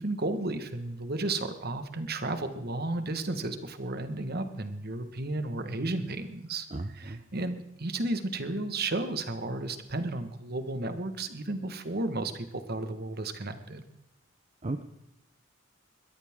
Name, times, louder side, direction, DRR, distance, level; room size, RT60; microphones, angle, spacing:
voice 1, 0.0-13.8, right 2 dB, 50° right, 9 dB, 1.5 m, -33 dB
voice 2, 6.7-7.2 14.6-14.8, right 2 dB, 35° right, 7 dB, 0.7 m, -35 dB
22.0 x 13.5 x 3.7 m, 0.87 s
head